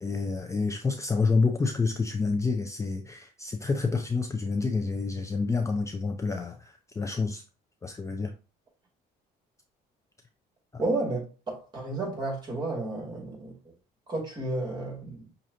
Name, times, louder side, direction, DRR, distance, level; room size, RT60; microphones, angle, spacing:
voice 1, 0.0-7.4 7.8-8.3 10.7-10.8, left 4 dB, 20° left, 0.4 m, -28 dB
voice 2, 10.8-13.6 14.1-15.3, right 2 dB, 25° right, 2.4 m, -32 dB
6.1 x 2.5 x 2.8 m
cardioid pair, 110°, 17 cm